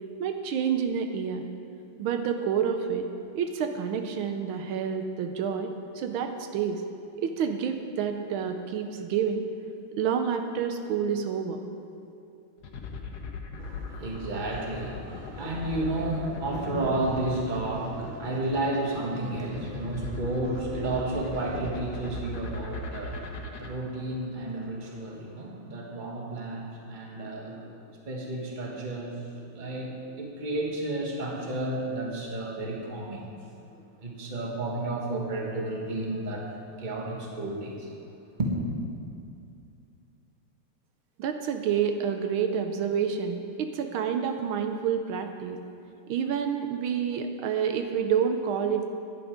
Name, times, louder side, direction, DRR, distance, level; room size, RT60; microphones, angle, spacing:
voice 1, 0.2-1.4 2.0-3.1 3.3-6.8 7.2-9.4 10.0-11.6 41.2-45.6 46.1-48.9, right 7 dB, 80° right, 6 dB, 1.5 m, -28 dB
sound 1, 12.6-23.7, left 3 dB, 60° left, 1.3 m, -38 dB
voice 2, 13.6-27.8 28.0-33.3 34.0-36.5 36.8-37.9 38.4-38.6, right 2 dB, 25° right, -1 dB, 1.4 m, -32 dB
11.0 x 10.5 x 5.0 m, 2.5 s
omnidirectional pair, 2.2 m